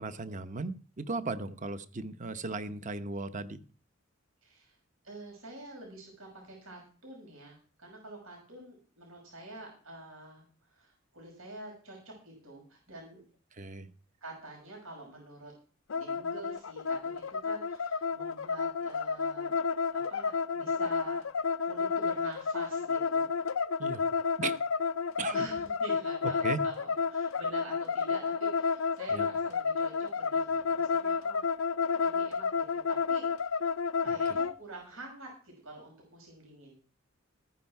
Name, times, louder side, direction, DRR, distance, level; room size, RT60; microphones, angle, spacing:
voice 1, 0.0-3.6 13.5-13.9 23.8-24.0 24.4-24.6 25.2-25.5 26.4-26.6 29.1-29.3 34.0-34.2, right 3 dB, 35° right, 12 dB, 0.9 m, -37 dB
voice 2, 4.4-4.8 5.0-13.2 14.2-15.5 16.0-19.6 19.9-21.2 21.6-23.5 25.3-31.5 32.0-33.7 34.0-36.8, right 2 dB, 90° right, -1 dB, 6.0 m, -47 dB
sound 1, 15.9-34.5, left 5 dB, 85° left, 0.6 m, -31 dB
14.5 x 9.8 x 4.7 m, 0.39 s
head